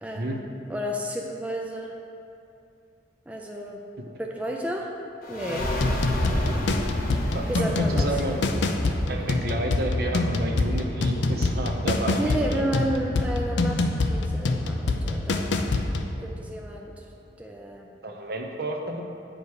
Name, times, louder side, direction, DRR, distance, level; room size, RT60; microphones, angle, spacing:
voice 1, 0.0-2.0 3.3-3.8 4.2-4.9 5.3-5.7 6.2-6.7 7.5-8.1 12.2-15.7 16.2-17.1 17.4-17.9, equal, 10° right, 0 dB, 0.4 m, -32 dB
sound 1, 5.2-16.5, left 1 dB, 55° left, 1.2 m, -33 dB
sound 2, 5.8-16.1, left 2 dB, 80° left, 0.5 m, -26 dB
voice 2, 7.3-8.4 9.1-12.7 18.0-19.0, right 1 dB, 60° right, 1 dB, 0.8 m, -31 dB
9.3 x 5.1 x 4.8 m, 2.6 s
head